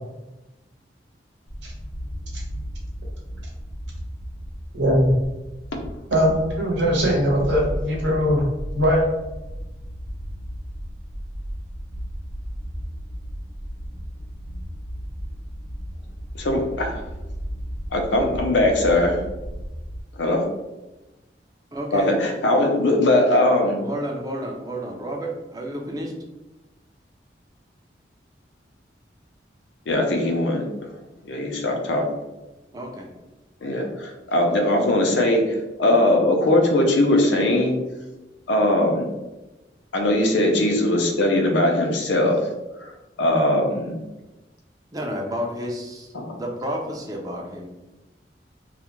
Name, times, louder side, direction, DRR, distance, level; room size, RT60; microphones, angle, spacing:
sound 1, 1.5-20.0, equal, 65° right, 0.6 m, -34 dB
voice 1, 4.7-5.1 6.1-8.4 8.7-9.0, equal, 90° right, -3 dB, 0.8 m, -20 dB
voice 2, 16.3-17.0 17.9-19.2 20.2-20.4 21.9-23.8 29.9-30.7 31.3-32.1 33.6-37.8 38.5-39.1 39.9-42.5 42.8-42.9 43.2-44.0 46.1-46.4, left 1 dB, 90° left, 2 dB, 0.5 m, -20 dB
voice 3, 21.7-22.1 23.8-26.1 32.7-33.1 44.9-47.7, equal, 20° right, 1 dB, 0.3 m, -31 dB
2.3 x 2.1 x 2.9 m, 1.0 s
head